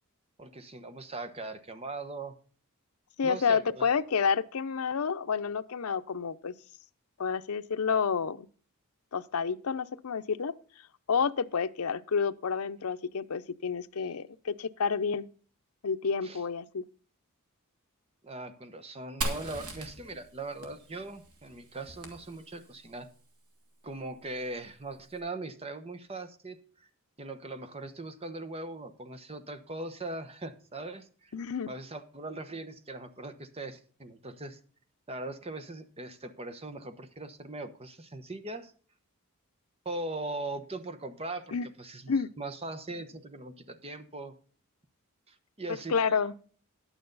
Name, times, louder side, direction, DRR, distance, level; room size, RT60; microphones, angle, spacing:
voice 1, 0.4-2.4 3.2-3.9 16.2-16.4 18.2-23.1 23.8-26.9 27.2-31.3 31.7-34.6 35.1-38.7 39.8-44.3 45.3-45.9, right 2 dB, 25° right, 1.1 m, -40 dB
voice 2, 3.2-6.5 7.2-8.5 9.1-10.5 11.1-15.3 15.8-16.8 31.3-31.7 41.5-41.7 42.1-42.3 45.9-46.3, left 6 dB, 80° left, 0.6 m, -29 dB
Fire, 19.2-22.9, right 2 dB, 80° right, 2.7 m, -39 dB
11.0 x 9.0 x 4.0 m
head